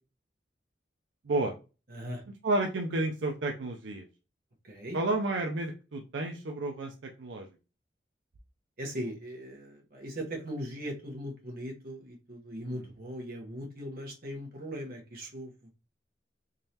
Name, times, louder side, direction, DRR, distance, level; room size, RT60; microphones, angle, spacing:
voice 1, 1.9-2.2 4.6-5.0 8.8-15.7, equal, 50° right, 1.1 m, -39 dB
voice 2, 2.4-4.0 4.9-6.9 7.2-7.5 12.6-12.8, right 2 dB, 75° right, 0.5 m, -31 dB
3.7 x 3.1 x 2.8 m
head